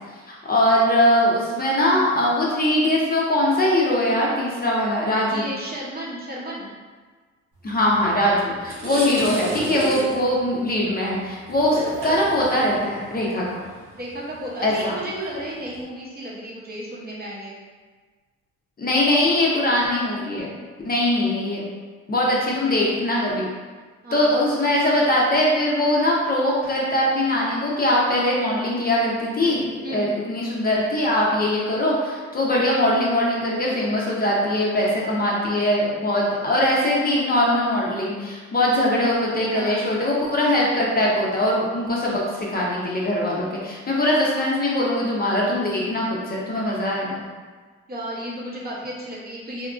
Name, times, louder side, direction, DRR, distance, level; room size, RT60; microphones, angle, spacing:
voice 1, 0.3-5.4 7.6-13.4 14.6-14.9 18.8-20.5 20.8-21.6 22.1-23.5 24.1-47.2, left 1 dB, 30° left, -4 dB, 0.6 m, -21 dB
voice 2, 5.3-6.7 13.9-17.5 22.6-22.8 24.0-24.5 29.8-30.1 39.5-39.8 47.9-49.7, right 1 dB, 30° right, -5 dB, 0.7 m, -33 dB
sound 1, 8.0-8.2 8.5-15.8, right 1 dB, 85° right, 0.9 m, -33 dB
2.8 x 2.4 x 2.4 m, 1.4 s
cardioid pair, 90°, 30 cm